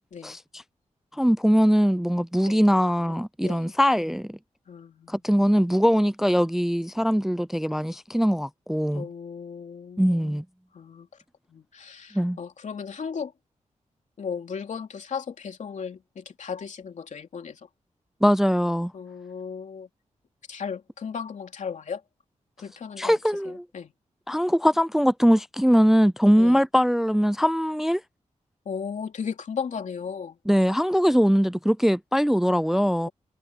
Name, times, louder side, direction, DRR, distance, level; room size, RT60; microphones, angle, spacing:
voice 1, 1.1-4.4 5.1-9.1 10.0-10.4 12.1-12.4 18.2-18.9 23.0-23.6 24.3-28.0 30.5-33.1, equal, 5° right, 0.3 m, -21 dB
voice 2, 3.4-3.7 4.7-5.1 8.9-10.3 10.7-11.1 11.5-13.3 14.2-17.7 18.9-19.9 20.5-22.0 22.6-23.2 23.4-23.9 26.4-26.6 28.6-30.4, left 6 dB, 75° left, 2.9 m, -36 dB
wide cardioid pair, 85°, 13 cm